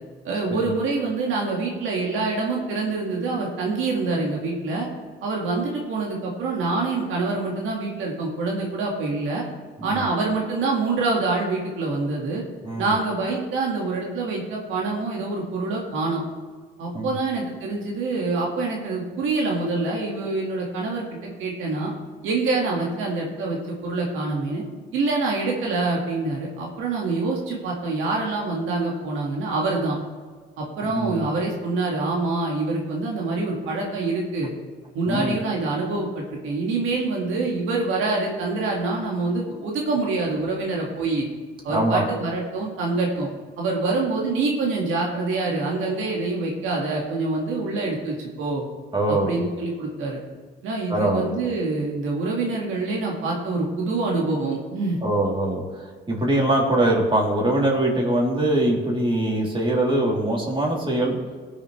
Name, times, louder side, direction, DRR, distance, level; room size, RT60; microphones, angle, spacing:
voice 1, 0.2-4.9 5.2-9.4 9.8-12.4 12.8-16.2 16.8-21.1 21.4-21.9 22.2-24.6 24.9-30.0 30.6-34.5 34.9-41.2 41.6-43.3 43.6-48.6 49.1-50.2 50.6-55.0, right 3 dB, 90° right, -2 dB, 2.0 m, -26 dB
voice 2, 30.8-31.2 35.0-35.4 41.7-42.1 48.9-49.4 50.9-51.3 55.0-61.2, right 1 dB, 25° right, -3 dB, 3.4 m, -23 dB
18.5 x 7.2 x 3.3 m, 1.5 s
cardioid pair, 90°, 20 cm